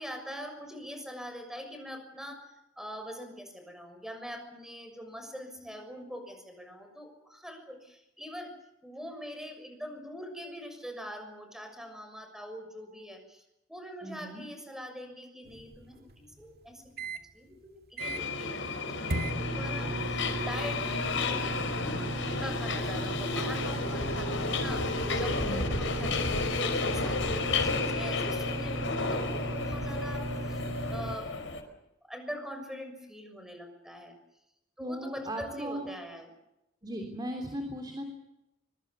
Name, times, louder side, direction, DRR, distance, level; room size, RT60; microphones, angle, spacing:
voice 1, 0.0-2.5 2.8-8.5 8.8-13.4 13.7-30.6 30.9-31.3 31.6-31.7 32.0-34.1 34.8-36.3, equal, 5° right, 6 dB, 6.7 m, -43 dB
voice 2, 14.0-14.4 25.4-25.7 34.8-35.9 36.8-38.0, equal, 20° right, 4 dB, 3.5 m, -37 dB
sound 1, 15.5-17.2 17.7-17.8 18.0-18.4 19.1-31.2, right 1 dB, 55° right, 2.3 m, -36 dB
Subway metro underground, 18.0-31.6, left 3 dB, 75° left, 5.0 m, -32 dB
25.0 x 24.5 x 6.9 m, 0.87 s
head